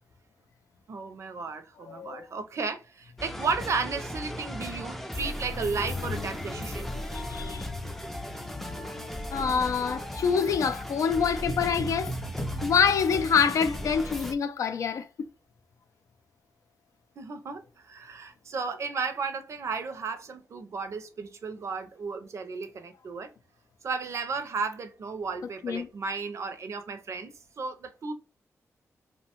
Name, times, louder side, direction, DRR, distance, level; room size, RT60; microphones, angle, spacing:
voice 1, 0.9-6.9 17.2-23.3 23.8-27.3 27.6-28.1, right 4 dB, 60° right, 0.5 m, -34 dB
voice 2, 1.9-2.2 6.9-7.7 8.4-12.1 12.6-15.3 25.6-25.9, left 6 dB, 80° left, 0.3 m, -27 dB
sound 1, 3.2-14.3, left 1 dB, 5° left, 0.3 m, -37 dB
sound 2, 11.5-14.0, right 1 dB, 25° left, 0.7 m, -37 dB
2.7 x 2.1 x 2.8 m
wide cardioid pair, 100°, 6 cm